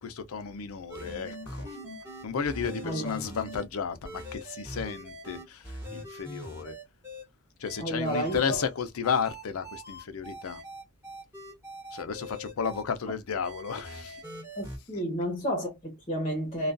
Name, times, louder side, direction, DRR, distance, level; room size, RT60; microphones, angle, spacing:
voice 1, 0.0-1.8 2.2-6.8 7.6-10.6 11.9-14.2 14.9-15.0, left 6 dB, 85° left, 0.5 m, -33 dB
sound 1, 0.9-3.6 4.0-7.2 7.6-8.4 9.0-12.8 13.4-14.8, equal, 10° right, 1.1 m, -42 dB
voice 2, 7.8-8.6 14.6-16.7, equal, 30° left, 0.9 m, -31 dB
2.3 x 2.2 x 2.4 m
head